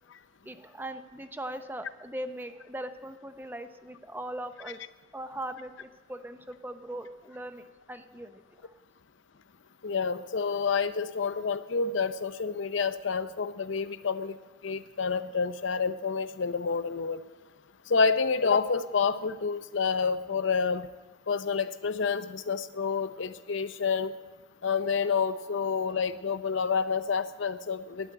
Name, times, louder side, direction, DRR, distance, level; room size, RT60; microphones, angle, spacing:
voice 1, 0.4-4.8 5.1-8.7, right 1 dB, 10° right, 9 dB, 0.5 m, -40 dB
voice 2, 9.8-14.4 14.6-17.2 17.9-20.9 21.3-24.1 24.6-28.1, left 5 dB, 75° left, 12 dB, 0.6 m, -28 dB
12.5 x 8.9 x 9.2 m, 1.2 s
head